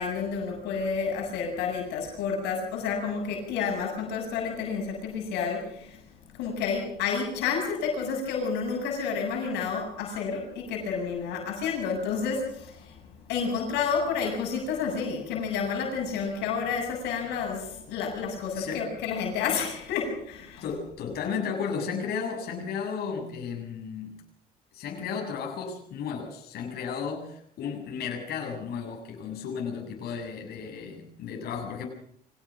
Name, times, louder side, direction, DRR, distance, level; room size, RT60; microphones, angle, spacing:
voice 1, 0.0-6.0 6.3-13.0 13.3-20.6, left 5 dB, 90° left, 1 dB, 7.6 m, -30 dB
voice 2, 18.5-18.9 20.6-24.2 24.7-31.9, left 6 dB, 65° left, 0 dB, 7.8 m, -34 dB
25.0 x 17.5 x 6.2 m, 0.67 s
cardioid pair, 110°, 17 cm